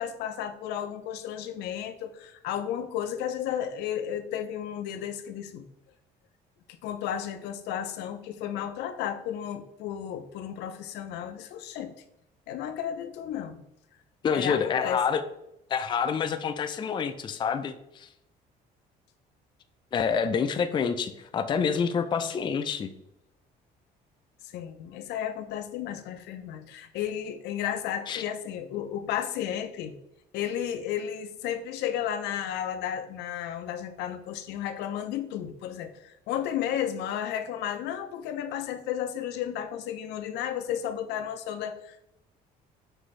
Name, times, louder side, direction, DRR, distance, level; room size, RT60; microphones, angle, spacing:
voice 1, 0.0-5.7 6.8-11.9 12.5-13.6 14.3-15.0 24.4-29.9 30.3-42.0, left 10 dB, 80° left, 9 dB, 0.5 m, -33 dB
voice 2, 14.2-15.2 15.7-18.1 19.9-22.9 28.1-28.2, left 6 dB, 30° left, 8 dB, 0.3 m, -27 dB
6.0 x 2.7 x 3.1 m, 0.81 s
cardioid pair, 110°, 17 cm